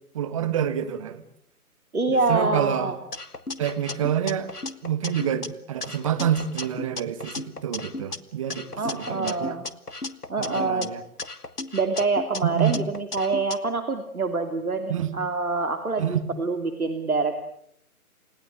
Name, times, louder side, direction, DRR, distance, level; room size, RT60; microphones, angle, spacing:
voice 1, 0.1-1.2 2.1-2.9 3.6-4.5 4.8-9.6 10.4-11.0 12.4-12.8 14.9-15.1 16.0-16.2, right 9 dB, 20° right, 10 dB, 1.5 m, -27 dB
voice 2, 1.9-2.9 8.8-9.6 10.3-10.9 11.7-17.4, right 3 dB, 70° right, 7 dB, 2.9 m, -26 dB
sound 1, 3.1-5.5 5.8-8.2 8.5-10.9 11.2-13.6, left 3 dB, 90° left, 1.6 m, -35 dB
29.5 x 17.5 x 9.1 m, 0.73 s
figure-of-eight pair, 145°, 45 cm